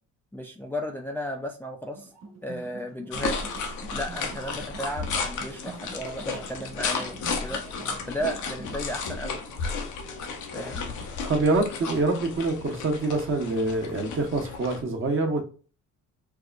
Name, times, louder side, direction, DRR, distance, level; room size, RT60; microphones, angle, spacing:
voice 1, 0.3-2.1 2.4-3.4 3.9-7.6 8.1-9.4 10.5-10.8, equal, 5° left, 2 dB, 0.4 m, -34 dB
sound 1, 1.9-8.8, right 3 dB, 60° right, 1.4 m, -45 dB
sound 2, 3.1-14.8, left 5 dB, 80° left, 0.8 m, -33 dB
voice 2, 11.3-15.4, right 2 dB, 45° right, 3 dB, 1.0 m, -25 dB
4.6 x 2.1 x 2.4 m, 0.37 s
cardioid pair, 90°, 30 cm